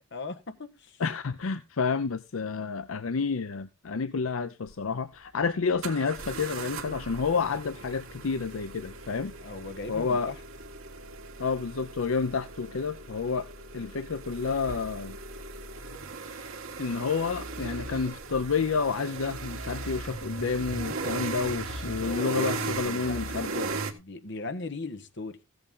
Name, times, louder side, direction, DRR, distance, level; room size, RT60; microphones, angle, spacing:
voice 1, 0.0-1.0 9.4-10.4 22.0-25.4, left 3 dB, 60° left, 1.3 m, -39 dB
voice 2, 1.0-9.3 9.9-10.3 11.4-13.5 13.7-15.2 16.2-16.5 16.8-23.7, left 5 dB, 80° left, 0.6 m, -30 dB
sound 1, 4.7-4.8 5.8-23.9, right 3 dB, 80° right, 1.6 m, -38 dB
sound 2, 20.0-22.3, right 1 dB, 5° left, 7.3 m, -42 dB
15.5 x 7.9 x 3.8 m
head